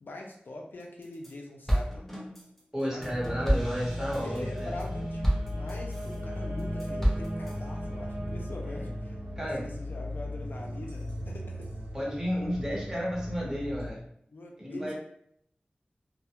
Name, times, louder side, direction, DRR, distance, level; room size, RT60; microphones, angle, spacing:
voice 1, 0.0-2.1 2.9-3.1 4.1-11.7 14.3-14.9, left 2 dB, 85° left, 0 dB, 0.4 m, -43 dB
sound 1, 0.8-1.3 1.7-6.2 6.6-7.6, equal, 5° left, 0.6 m, -31 dB
voice 2, 2.7-4.8 8.6-8.9 9.4-9.7 11.9-14.0 14.6-14.9, equal, 15° right, -5 dB, 1.0 m, -32 dB
sound 2, 3.0-13.9, equal, 85° right, 0.6 m, -36 dB
2.3 x 2.1 x 2.8 m, 0.67 s
wide cardioid pair, 60°, 3 cm